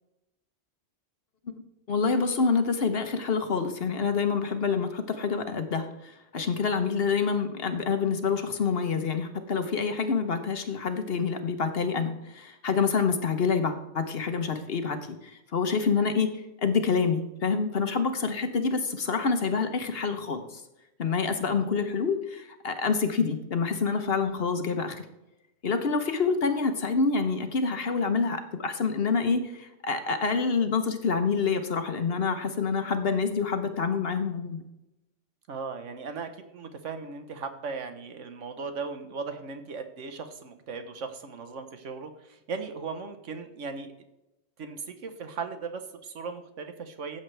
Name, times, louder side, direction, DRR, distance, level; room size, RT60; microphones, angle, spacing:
voice 1, 1.9-16.3 16.6-20.6 21.0-25.0 25.6-34.6, left 5 dB, 55° left, 8 dB, 1.1 m, -27 dB
voice 2, 35.5-43.9 44.6-47.2, right 5 dB, 80° right, 8 dB, 1.4 m, -38 dB
15.0 x 7.2 x 3.3 m, 0.92 s
omnidirectional pair, 1.3 m